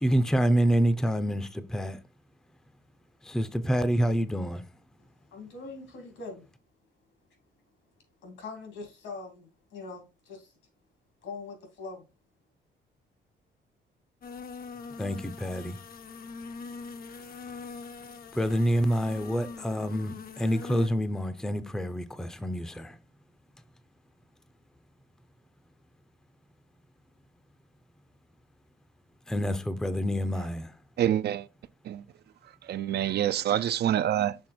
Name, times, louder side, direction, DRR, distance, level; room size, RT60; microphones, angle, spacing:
voice 1, 0.0-2.0 3.2-4.6 15.0-15.8 18.3-23.0 29.3-30.8, equal, 5° left, 0.5 m, -27 dB
voice 2, 5.3-6.5 8.2-10.5 11.2-12.1, left 3 dB, 80° left, 2.6 m, -42 dB
sound 1, 14.2-20.9, left 4 dB, 50° left, 0.7 m, -42 dB
voice 3, 31.0-31.5 31.8-32.0 32.7-34.4, right 11 dB, 55° right, 0.4 m, -26 dB
6.4 x 3.4 x 4.3 m
cardioid pair, 90°, 20 cm